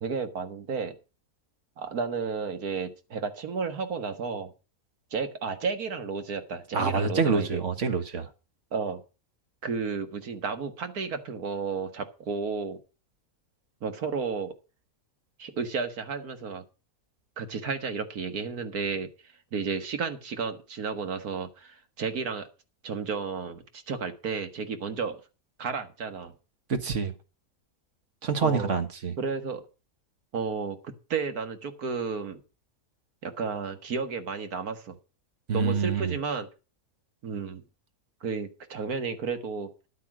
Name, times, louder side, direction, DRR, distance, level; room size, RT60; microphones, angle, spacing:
voice 1, 0.0-1.0 1.8-4.5 5.1-7.6 8.7-9.0 9.6-12.8 13.8-14.5 15.4-16.6 17.4-19.1 19.5-22.5 22.8-25.2 25.6-26.3 28.4-28.7 29.2-29.6 30.3-32.4 33.2-35.0 35.5-36.5 37.2-37.6 38.2-39.7, right 5 dB, 75° right, 2.0 m, -32 dB
voice 2, 6.7-8.3 26.7-27.1 28.2-29.2 35.5-36.2, right 5 dB, 55° right, 1.7 m, -26 dB
11.5 x 8.5 x 6.1 m
omnidirectional pair, 1.6 m